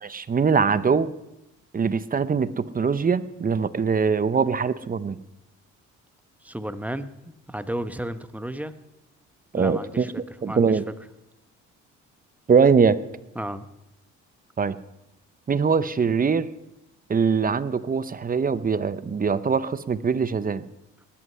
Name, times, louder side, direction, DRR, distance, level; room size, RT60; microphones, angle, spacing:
voice 1, 0.0-1.1 1.7-5.2 9.5-10.8 12.5-13.0 14.6-14.8 15.5-16.5 17.1-20.6, right 5 dB, 30° right, 15 dB, 0.7 m, -22 dB
voice 2, 6.4-8.7 9.5-10.1 10.4-10.8 13.3-13.7, right 1 dB, 5° right, 11 dB, 0.9 m, -33 dB
19.0 x 11.0 x 5.6 m, 0.92 s
cardioid pair, 90°, 30 cm